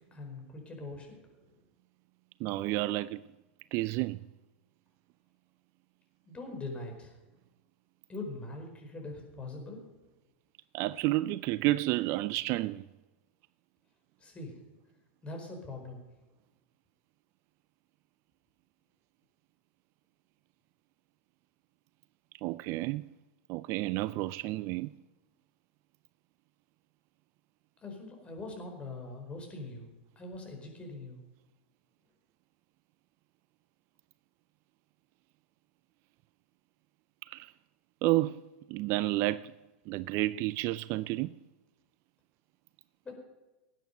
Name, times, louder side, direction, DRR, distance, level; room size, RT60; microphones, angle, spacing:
voice 1, 0.1-1.2 1.5-1.6 6.2-7.2 8.1-9.8 14.2-14.6 15.2-16.0 27.8-29.9 30.1-31.2 43.0-43.2, left 2 dB, 20° left, 4.7 m, -42 dB
voice 2, 2.4-3.2 3.7-4.2 10.7-12.9 22.4-23.1 23.5-24.9 37.2-37.5 38.0-39.5 39.9-41.4, right 18 dB, 45° right, 0.4 m, -31 dB
19.0 x 9.3 x 5.4 m
hypercardioid pair, 110°, 6 cm